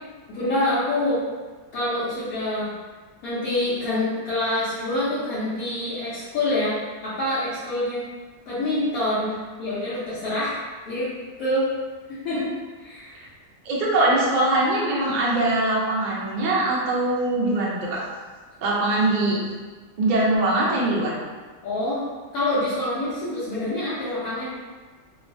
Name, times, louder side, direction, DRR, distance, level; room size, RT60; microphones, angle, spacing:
voice 1, 0.3-1.2 1.7-2.7 3.2-8.0 8.5-9.3 9.6-10.6 10.9-11.1 11.4-11.7 12.1-12.5 12.8-13.3 21.6-22.1 22.3-24.5, left 1 dB, 80° left, -12 dB, 1.2 m, -26 dB
voice 2, 13.6-18.0 18.6-19.4 20.0-21.2, right 2 dB, 65° right, -4 dB, 0.4 m, -22 dB
2.9 x 2.1 x 2.5 m, 1.4 s
omnidirectional pair, 1.5 m